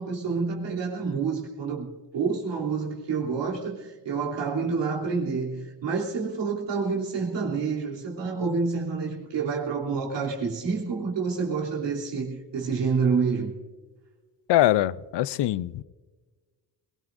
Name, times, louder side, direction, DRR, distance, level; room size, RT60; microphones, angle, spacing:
voice 1, 0.0-13.5, right 5 dB, 70° right, 3.4 m, -28 dB
voice 2, 14.5-15.8, left 14 dB, 65° left, 0.6 m, -23 dB
22.0 x 19.0 x 2.6 m
cardioid pair, 100°, 44 cm